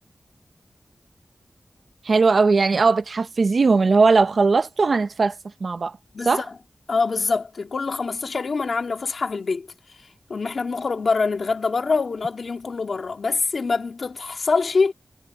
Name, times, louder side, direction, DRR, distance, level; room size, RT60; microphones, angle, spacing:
voice 1, 2.0-5.3 5.6-6.0 6.2-6.4, right 4 dB, 70° right, 0.8 m, -19 dB
voice 2, 6.1-6.4 6.9-9.7 10.3-14.9, left 4 dB, 75° left, 2.5 m, -24 dB
wide cardioid pair, 105°, 0 cm